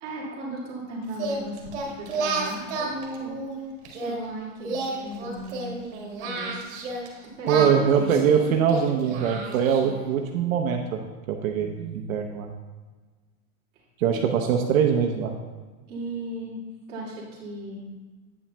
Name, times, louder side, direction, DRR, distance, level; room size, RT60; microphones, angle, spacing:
voice 1, 0.0-3.4 3.9-6.6 7.2-7.7 8.0-8.2 11.6-11.9 13.8-13.9 14.1-14.3 15.9-16.6 16.9-17.9, right 1 dB, 20° right, -7 dB, 2.0 m, -36 dB
Singing, 1.1-4.2 4.6-7.1 7.4-10.0, right 3 dB, 55° right, 1.6 m, -31 dB
voice 2, 7.5-11.0 11.3-12.5 14.0-15.3, right 7 dB, 70° right, 2 dB, 0.8 m, -23 dB
8.6 x 8.5 x 2.2 m, 1.3 s
supercardioid pair, 180°, 43 cm